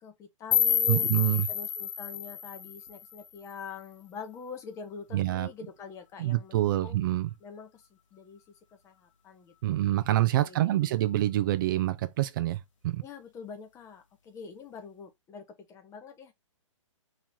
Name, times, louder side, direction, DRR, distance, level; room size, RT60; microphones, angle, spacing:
voice 1, 0.0-1.1 1.5-7.0 7.4-8.4 8.8-9.8 10.4-11.0 13.0-16.3, left 6 dB, 15° left, 0.7 m, -45 dB
sound 1, 0.5-3.5, left 9 dB, 70° left, 0.9 m, -29 dB
voice 2, 0.9-1.5 5.1-5.5 6.2-7.3 9.6-13.0, right 14 dB, 40° right, 0.4 m, -26 dB
3.1 x 3.0 x 3.7 m
hypercardioid pair, 135°, 17 cm